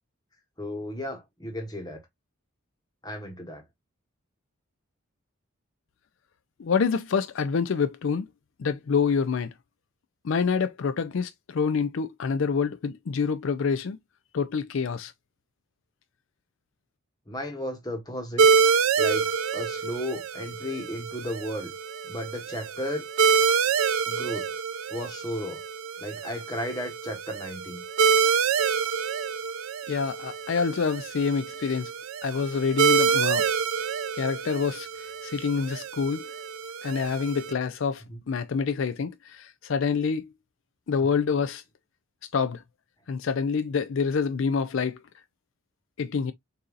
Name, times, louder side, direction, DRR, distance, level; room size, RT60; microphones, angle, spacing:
voice 1, 0.6-2.0 3.0-3.6 17.3-18.5 19.0-21.7 22.1-23.1 24.0-24.5 24.9-25.6 26.0-27.8 38.1-38.2 41.0-41.1, left 1 dB, 20° left, 1.2 m, -34 dB
voice 2, 6.6-8.3 8.6-9.5 10.2-14.0 14.3-15.1 29.9-31.9 32.2-33.5 34.1-36.2 36.8-40.3 40.9-41.6 42.3-42.6 43.1-45.0 46.0-46.3, left 5 dB, 65° left, 0.4 m, -27 dB
sound 1, 18.4-37.5, right 6 dB, 75° right, 0.5 m, -27 dB
6.7 x 2.7 x 2.4 m
head